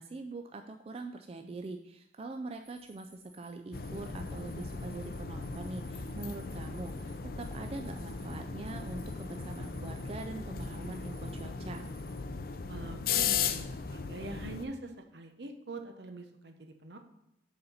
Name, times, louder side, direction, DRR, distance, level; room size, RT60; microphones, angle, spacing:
voice 1, 0.0-11.8, right 3 dB, 35° right, 5 dB, 0.3 m, -43 dB
sound 1, 2.6-12.2, right 2 dB, 10° right, 1.0 m, -61 dB
sound 2, 3.7-14.7, left 6 dB, 55° left, 0.5 m, -37 dB
voice 2, 12.7-17.0, right 2 dB, 70° right, 5 dB, 0.9 m, -44 dB
6.6 x 4.2 x 5.5 m, 0.88 s
head